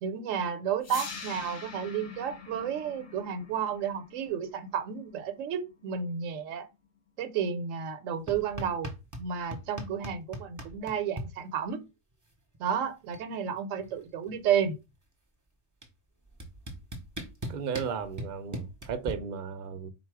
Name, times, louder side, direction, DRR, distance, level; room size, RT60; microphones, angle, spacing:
voice 1, 0.0-6.7 7.2-8.9 9.2-11.8 12.6-14.8, right 8 dB, 85° right, 1.0 m, -32 dB
sound 1, 0.8-6.9, left 5 dB, 45° left, 0.8 m, -45 dB
sound 2, 8.3-9.3 9.5-11.3 12.5-12.6 12.9-13.3 13.6-14.9 15.8-15.9 16.4-19.1, right 1 dB, 20° right, 0.6 m, -38 dB
voice 2, 17.5-19.9, right 6 dB, 55° right, 0.6 m, -35 dB
4.0 x 2.3 x 4.5 m
omnidirectional pair, 1.3 m